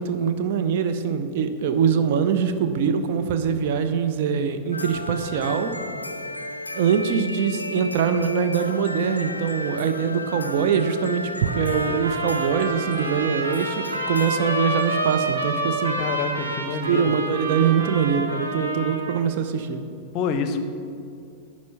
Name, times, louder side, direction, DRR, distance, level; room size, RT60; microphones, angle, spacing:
voice 1, 0.0-5.7 6.7-16.0 16.9-19.8, right 7 dB, 50° right, 8 dB, 0.5 m, -23 dB
sound 1, 4.7-15.2, left 2 dB, 85° left, 0.4 m, -34 dB
sound 2, 11.5-19.2, right 2 dB, 75° right, 1.0 m, -29 dB
voice 2, 16.0-17.1 20.1-20.6, left 5 dB, 40° left, 8 dB, 0.6 m, -27 dB
10.5 x 4.3 x 5.5 m, 2.4 s
figure-of-eight pair, 90°, 0 cm